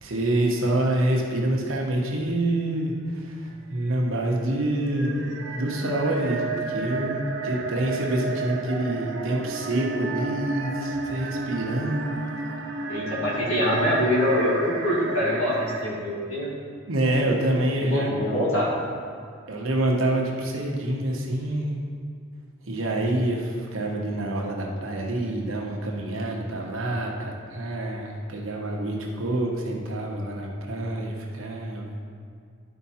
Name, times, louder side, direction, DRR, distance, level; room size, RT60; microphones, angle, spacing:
voice 1, 0.0-5.1 5.5-12.0 16.9-18.1 19.5-21.8 22.7-31.9, right 1 dB, 75° right, 0 dB, 1.2 m, -27 dB
sound 1, 3.2-15.8, right 4 dB, 60° right, 0.7 m, -33 dB
voice 2, 12.9-16.5 17.8-18.7, equal, 70° left, -6 dB, 1.8 m, -24 dB
12.0 x 4.7 x 4.3 m, 2.2 s
head